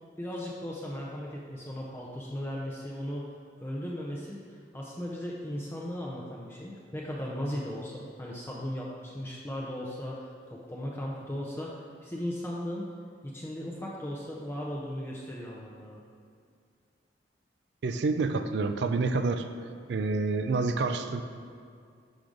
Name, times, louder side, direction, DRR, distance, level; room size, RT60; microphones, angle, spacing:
voice 1, 0.2-3.2 3.6-12.9 13.2-16.0, equal, 15° left, -4 dB, 0.5 m, -37 dB
voice 2, 17.8-19.5 19.9-21.2, right 3 dB, 70° right, 8 dB, 0.4 m, -28 dB
6.2 x 4.8 x 3.8 m, 2.3 s
head